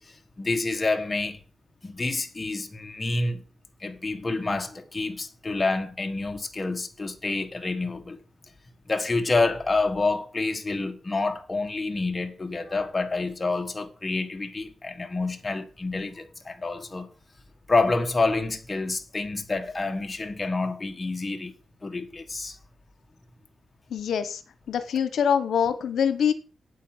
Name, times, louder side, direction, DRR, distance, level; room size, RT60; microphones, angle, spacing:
voice 1, 0.0-1.4 1.8-3.4 3.8-8.2 8.9-17.1 17.7-21.5 21.8-22.6, left 3 dB, 25° left, 1.5 m, -28 dB
voice 2, 23.9-24.4 24.7-26.3, left 7 dB, 80° left, 1.0 m, -24 dB
8.6 x 8.3 x 6.1 m
wide cardioid pair, 130°, 0 cm